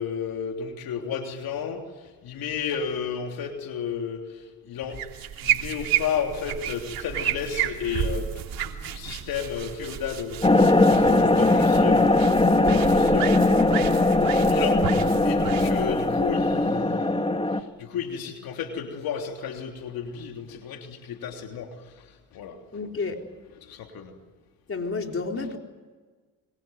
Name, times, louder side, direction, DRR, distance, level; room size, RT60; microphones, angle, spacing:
voice 1, 0.0-1.8 2.2-4.2 4.7-5.0 5.4-12.2 12.6-14.9 15.2-17.3 17.8-21.7 22.3-22.6 23.7-24.1, left 7 dB, 80° left, 3 dB, 3.3 m, -32 dB
sound 1, 4.9-16.9, right 10 dB, 75° right, 3.1 m, -32 dB
sound 2, 10.4-17.6, left 2 dB, 15° left, 2.0 m, -20 dB
voice 2, 22.7-23.2 24.7-25.6, left 4 dB, 35° left, 3 dB, 4.2 m, -30 dB
25.5 x 23.0 x 9.3 m, 1.4 s
supercardioid pair, 70°, 35 cm